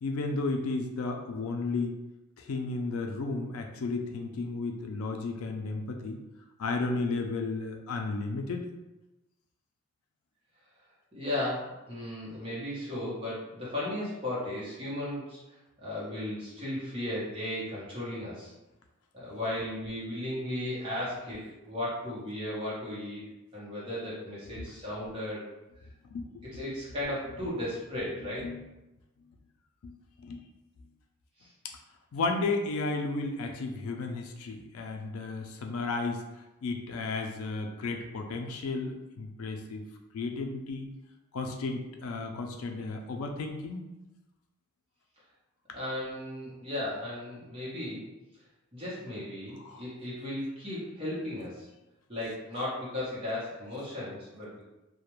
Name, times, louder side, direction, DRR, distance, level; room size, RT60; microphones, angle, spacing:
voice 1, 0.0-1.9 2.4-6.2 6.6-8.7 24.6-24.7 26.1-26.4 28.4-28.6 29.8-30.4 32.1-36.2 36.6-39.8 40.1-40.9 41.3-43.9 49.6-49.8, left 3 dB, 80° left, 4 dB, 0.4 m, -33 dB
voice 2, 11.1-15.4 15.8-18.5 19.1-23.2 23.5-25.4 26.5-28.5 31.4-31.5 45.7-48.1 48.7-51.7 52.1-54.7, left 1 dB, 25° right, -8 dB, 0.8 m, -35 dB
2.3 x 2.1 x 3.0 m, 1.0 s
head